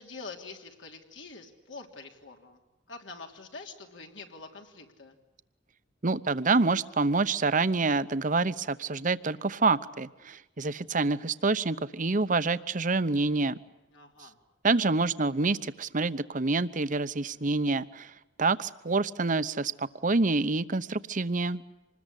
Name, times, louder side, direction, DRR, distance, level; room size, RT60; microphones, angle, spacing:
voice 1, 0.0-2.6 2.9-5.2 13.9-14.4, left 4 dB, 85° left, 2 dB, 3.3 m, -45 dB
voice 2, 6.0-13.6 14.6-18.1 18.4-21.6, right 3 dB, 45° right, 14 dB, 0.9 m, -27 dB
26.5 x 20.5 x 10.0 m, 1.0 s
head